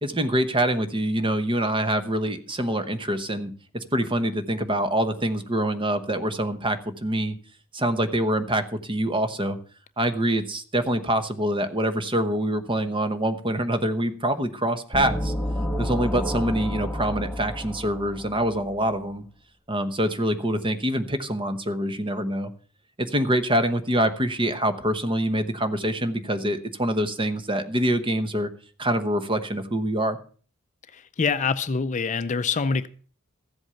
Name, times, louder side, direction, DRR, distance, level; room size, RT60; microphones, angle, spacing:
voice 1, 0.0-7.4 7.7-9.6 10.0-15.3 15.8-19.2 19.7-22.5 23.0-28.5 28.8-30.2, right 1 dB, 25° right, 1.0 m, -25 dB
sound 1, 14.9-18.7, equal, 5° left, 1.3 m, -30 dB
voice 2, 30.9-32.9, left 5 dB, 35° left, 0.5 m, -25 dB
14.0 x 8.0 x 5.7 m
head